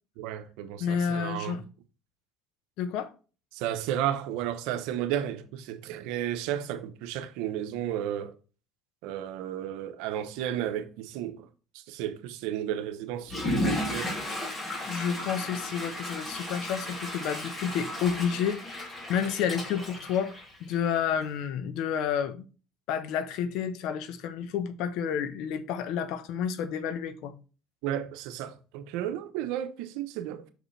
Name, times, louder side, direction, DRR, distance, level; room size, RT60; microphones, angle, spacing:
voice 1, 0.2-1.6 3.5-8.3 9.0-11.5 11.7-14.2 27.8-30.4, right 11 dB, 85° right, 0.8 m, -33 dB
voice 2, 0.8-1.6 2.8-3.1 14.9-22.4 22.9-27.3, left 7 dB, 75° left, 0.9 m, -30 dB
Water / Toilet flush, 13.2-21.0, left 1 dB, 20° left, 2.8 m, -34 dB
6.1 x 5.1 x 3.2 m
cardioid pair, 105°, 0 cm